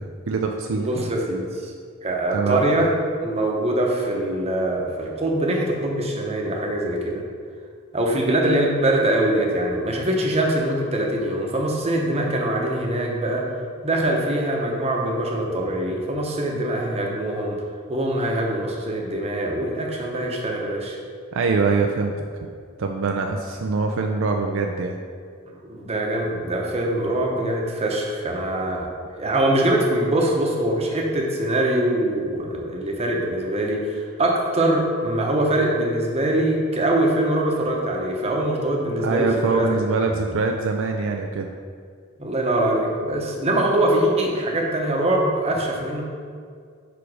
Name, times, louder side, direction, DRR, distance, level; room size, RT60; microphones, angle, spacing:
voice 1, 0.0-1.1 2.3-2.6 21.3-22.3 22.8-25.0 39.0-41.5, right 4 dB, 65° right, 2 dB, 0.4 m, -23 dB
voice 2, 0.8-1.7 2.0-2.9 3.2-7.2 7.9-13.4 13.8-17.6 17.9-21.0 25.5-28.9 29.2-39.7 42.2-46.0, right 1 dB, 30° right, -1 dB, 0.9 m, -23 dB
5.0 x 4.8 x 4.8 m, 2.1 s
head